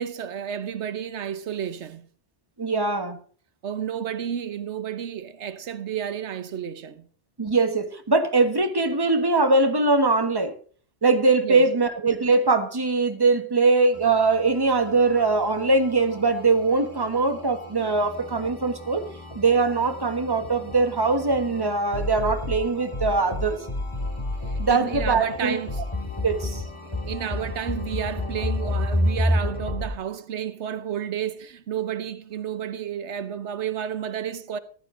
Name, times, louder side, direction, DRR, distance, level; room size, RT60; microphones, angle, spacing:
voice 1, 0.0-2.1 3.6-7.1 11.4-11.6 24.5-25.8 26.8-34.6, right 9 dB, 85° right, 1.2 m, -31 dB
voice 2, 2.6-3.2 7.4-10.5 11.0-19.0 19.3-23.6 24.6-25.6 26.2-26.6, right 3 dB, 20° right, 1.4 m, -22 dB
sound 1, 13.9-29.9, left 1 dB, 25° left, 2.5 m, -31 dB
14.5 x 12.0 x 3.8 m
omnidirectional pair, 1.1 m